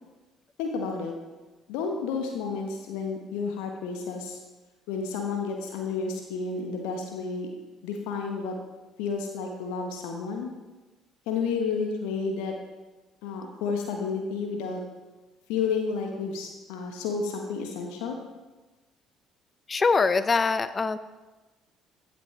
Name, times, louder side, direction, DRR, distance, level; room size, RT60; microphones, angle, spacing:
voice 1, 0.6-1.1 1.7-4.4 4.9-7.5 7.8-8.5 9.0-10.5 11.3-12.5 13.2-14.8 15.5-18.2, left 5 dB, 65° left, 2 dB, 1.3 m, -31 dB
voice 2, 19.7-21.0, left 4 dB, 30° left, 14 dB, 0.6 m, -23 dB
15.5 x 8.5 x 3.3 m, 1.2 s
figure-of-eight pair, 50°, 0 cm